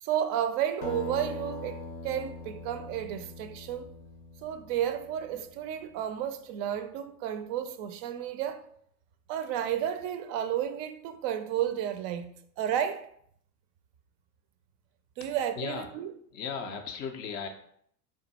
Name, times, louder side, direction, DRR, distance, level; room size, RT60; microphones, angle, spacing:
voice 1, 0.0-3.9 4.4-8.6 9.3-12.3 12.6-13.1 15.2-16.1, right 10 dB, 45° right, 0.4 m, -32 dB
Acoustic guitar, 0.8-5.6, left 3 dB, 80° left, 0.8 m, -42 dB
voice 2, 15.6-15.9 16.3-17.5, left 6 dB, 25° left, 0.3 m, -36 dB
3.5 x 2.2 x 4.0 m
hypercardioid pair, 90°, 47 cm